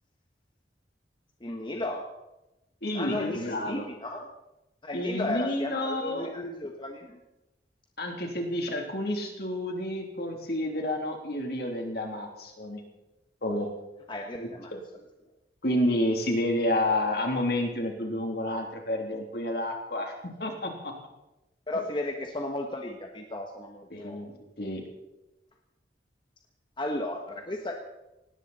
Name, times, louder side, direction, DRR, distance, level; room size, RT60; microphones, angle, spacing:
voice 1, 1.4-2.1 2.9-4.3 4.8-7.2 14.1-14.7 21.7-24.4 26.8-27.8, left 1 dB, 25° left, 3 dB, 1.4 m, -34 dB
voice 2, 2.8-3.8 4.9-6.3 8.0-12.8 13.4-13.7 14.4-14.8 15.6-20.1 20.4-20.9 23.9-24.3 24.6-24.8, left 1 dB, 60° left, 2 dB, 3.3 m, -30 dB
19.0 x 17.5 x 4.3 m, 0.96 s
head